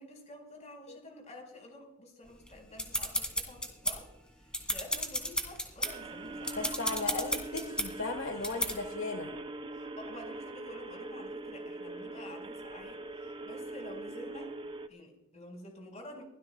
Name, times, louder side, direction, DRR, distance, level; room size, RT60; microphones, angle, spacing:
voice 1, 0.0-4.1 4.4-6.5 9.7-14.5 14.9-16.2, left 1 dB, 35° left, 2 dB, 4.7 m, -49 dB
sound 1, 2.4-4.1 4.5-5.9 6.4-7.9 8.4-8.7, left 1 dB, 5° left, 2.2 m, -33 dB
sound 2, 5.8-14.9, right 2 dB, 25° right, 0.7 m, -42 dB
voice 2, 6.6-9.3, left 3 dB, 75° left, 5 dB, 1.3 m, -36 dB
23.5 x 16.5 x 2.3 m, 0.83 s
head